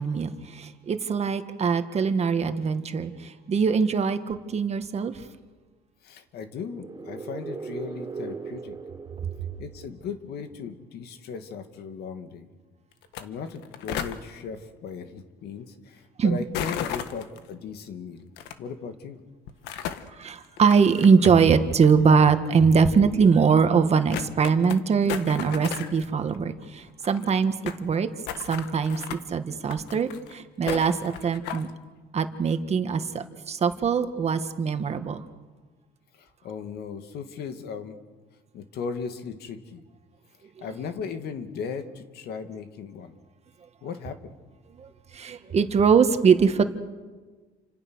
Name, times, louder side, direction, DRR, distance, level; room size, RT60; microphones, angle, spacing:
voice 1, 0.0-5.1 16.2-16.4 20.2-28.1 28.5-31.7 32.1-35.2 40.6-40.7 44.8-44.9 45.1-46.6, right 5 dB, 40° right, 8 dB, 1.8 m, -22 dB
voice 2, 6.0-8.7 9.6-12.5 13.2-18.2 18.6-19.2 36.1-38.0 38.5-39.8 40.6-43.1 43.8-44.4, left 6 dB, 70° left, 7 dB, 2.4 m, -37 dB
sound 1, 6.5-10.3, right 5 dB, 20° right, 4.3 m, -39 dB
sound 2, 13.0-13.2 13.5-14.2 16.5-17.4 18.4-18.5 19.5-20.1 20.6-21.5 21.8-21.9 22.8-22.9 23.3-23.4 23.7-23.8 24.1-24.8 25.1-26.1 26.3-26.4 26.6-26.7 26.9-27.8 28.3-29.2 29.7-30.3 30.7-31.7, left 9 dB, 90° left, 1.5 m, -34 dB
29.5 x 26.5 x 6.4 m, 1.4 s
cardioid pair, 110°, 17 cm